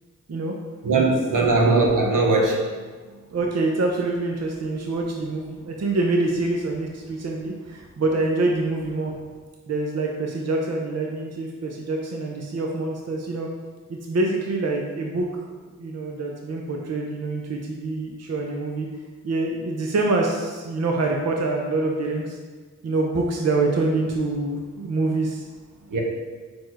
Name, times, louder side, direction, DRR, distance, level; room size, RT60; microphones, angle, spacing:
voice 1, 0.8-2.6 25.9-26.0, right 3 dB, 75° right, -1 dB, 1.1 m, -19 dB
voice 2, 3.3-9.1 9.7-13.5 13.9-15.4 15.8-18.9 19.2-22.4 22.8-25.4, right 2 dB, 55° right, 0 dB, 0.8 m, -25 dB
4.8 x 4.3 x 4.7 m, 1.4 s
cardioid pair, 50°, 31 cm